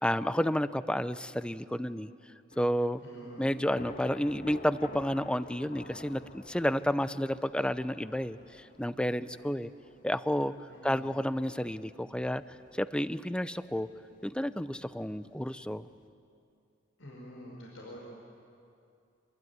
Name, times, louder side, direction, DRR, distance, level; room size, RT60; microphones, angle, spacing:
voice 1, 0.0-2.1 2.6-3.0 3.4-8.4 8.8-9.7 10.0-10.5 10.8-12.4 12.8-13.9 14.2-15.8, equal, 5° left, 14 dB, 0.6 m, -30 dB
Thunder / Rain, 2.5-16.1, left 2 dB, 45° left, 1.5 m, -52 dB
voice 2, 3.0-3.7 10.7-11.1 17.0-18.0, equal, 85° left, -3 dB, 5.0 m, -47 dB
26.0 x 21.5 x 9.5 m, 2.5 s
head